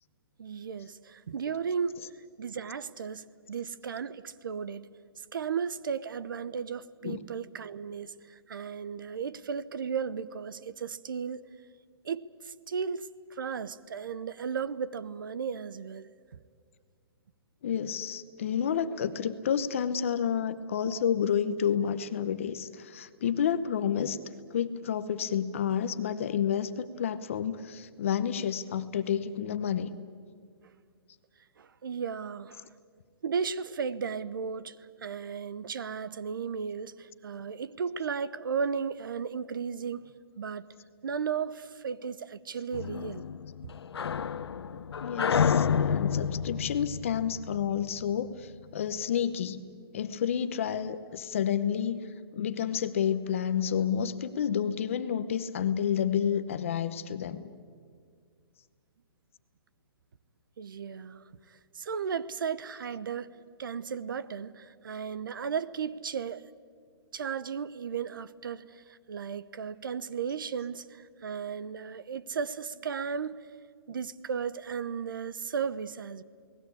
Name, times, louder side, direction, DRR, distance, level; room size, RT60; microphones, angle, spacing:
voice 1, 0.4-4.9 5.3-11.4 12.0-16.1 31.6-32.6 33.2-40.7 41.0-43.2 43.6-43.7 60.6-66.4 67.1-73.5 73.9-76.2, right 6 dB, 55° right, 0.8 m, -35 dB
voice 2, 17.6-24.2 24.5-29.9 45.0-49.6 49.9-52.1 52.3-57.5, left 8 dB, 30° left, 0.9 m, -30 dB
sound 1, 42.7-48.2, left 7 dB, 85° left, 0.9 m, -29 dB
29.5 x 19.5 x 8.4 m
hypercardioid pair, 180°, 13 cm